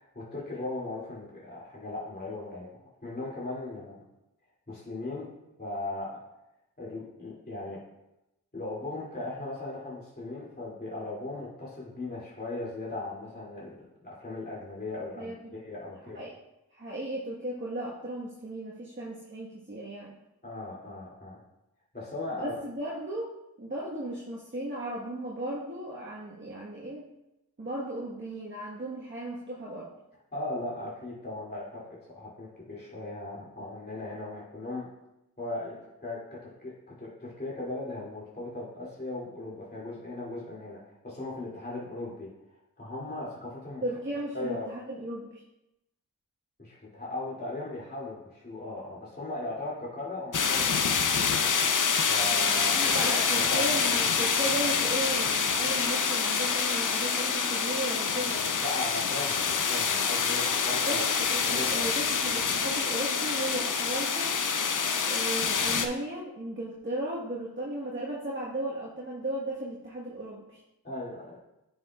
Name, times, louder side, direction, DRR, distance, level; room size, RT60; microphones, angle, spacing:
voice 1, 0.0-2.7 3.0-4.0 4.7-5.3 5.6-6.2 6.8-7.8 8.5-13.8 14.0-16.2 20.4-21.4 21.9-22.6 30.3-34.9 35.4-36.7 37.0-42.3 42.8-43.8 44.3-44.7 46.6-50.9 52.1-53.0 53.3-53.7 58.6-61.0 61.4-61.9 70.8-71.4, left 2 dB, 25° left, -7 dB, 2.5 m, -38 dB
voice 2, 15.2-15.5 16.1-16.3 16.7-20.1 22.3-23.3 23.6-27.1 27.6-29.9 43.8-45.4 52.7-58.4 60.8-64.4 65.1-70.6, right 1 dB, 30° right, -4 dB, 1.3 m, -35 dB
sound 1, 50.3-65.9, left 6 dB, 50° left, 0.6 m, -26 dB
9.5 x 5.7 x 2.4 m, 0.90 s
cardioid pair, 40°, 39 cm